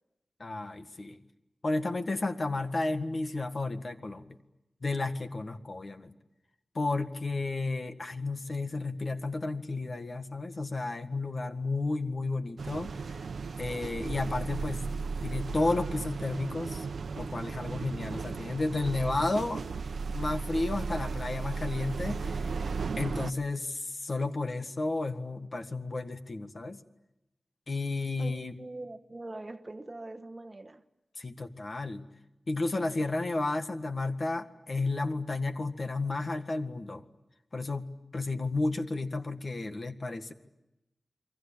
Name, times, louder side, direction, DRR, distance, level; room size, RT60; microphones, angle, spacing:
voice 1, 0.4-1.2 1.6-4.2 4.8-6.1 6.8-13.2 13.6-14.8 15.2-16.9 17.2-19.6 20.1-22.6 23.0-26.8 27.7-28.6 31.2-32.1 32.5-37.0 37.5-40.3, left 2 dB, 45° left, 8 dB, 1.7 m, -32 dB
sound 1, 12.6-23.3, right 4 dB, 90° right, 0.9 m, -35 dB
voice 2, 28.2-30.8, right 2 dB, 30° right, 9 dB, 1.2 m, -43 dB
28.5 x 23.5 x 8.7 m, 0.92 s
wide cardioid pair, 95°, 0 cm